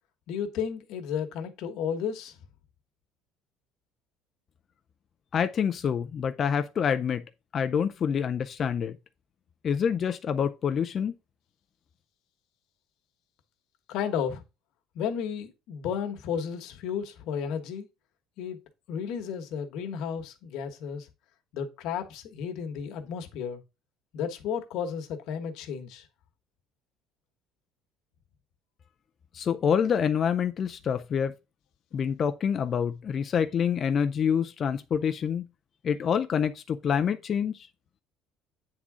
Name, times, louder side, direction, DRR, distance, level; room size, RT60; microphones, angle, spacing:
voice 1, 0.3-2.4 13.9-14.4 14.9-17.9 18.4-18.6 18.9-21.1 21.5-23.6 24.1-26.0, left 7 dB, 60° left, 1.2 m, -33 dB
voice 2, 5.3-7.2 7.5-9.0 9.6-11.2 29.3-31.3 31.9-35.5 35.8-37.7, left 7 dB, 30° left, 0.4 m, -27 dB
8.6 x 3.7 x 4.8 m
cardioid pair, 170°, 0 cm